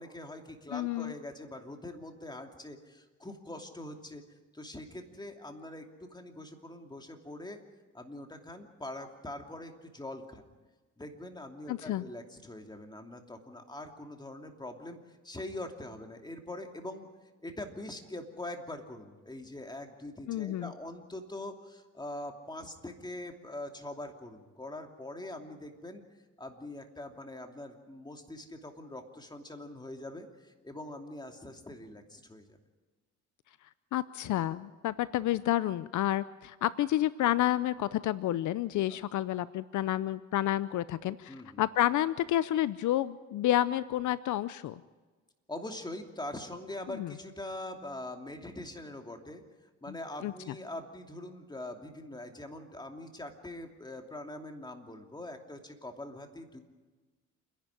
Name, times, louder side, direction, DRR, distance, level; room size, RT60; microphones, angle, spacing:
voice 1, 0.0-4.2 4.5-5.8 6.1-7.6 7.9-10.4 11.0-15.0 15.2-17.1 17.4-26.0 26.4-32.6 41.3-41.6 45.5-49.4 49.8-56.6, left 1 dB, 15° left, 4 dB, 2.9 m, -43 dB
voice 2, 0.7-1.1 11.7-12.0 20.3-20.7 33.9-44.8 46.9-47.1 50.2-50.3, left 13 dB, 75° left, 16 dB, 0.7 m, -30 dB
28.0 x 11.0 x 9.9 m, 1.3 s
cardioid pair, 90°, 30 cm